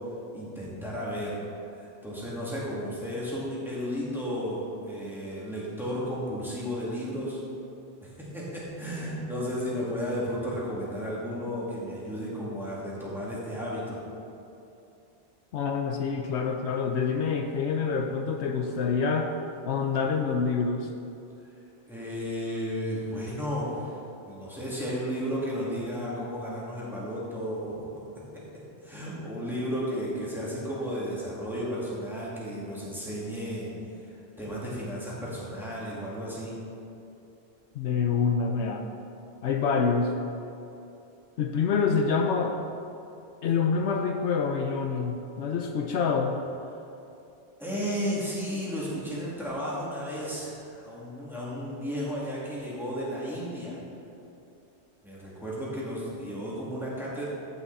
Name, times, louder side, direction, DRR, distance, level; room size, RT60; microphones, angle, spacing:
voice 1, 0.3-1.4 1.7-7.4 8.0-14.0 21.9-28.4 28.8-36.6 47.6-53.8 55.0-57.2, equal, ahead, -8 dB, 2.4 m, -33 dB
voice 2, 15.5-19.3 19.6-20.9 37.7-38.8 39.4-40.1 41.4-42.6 43.4-46.4, left 5 dB, 75° left, 4 dB, 0.9 m, -26 dB
15.0 x 5.8 x 4.1 m, 2.8 s
omnidirectional pair, 1.2 m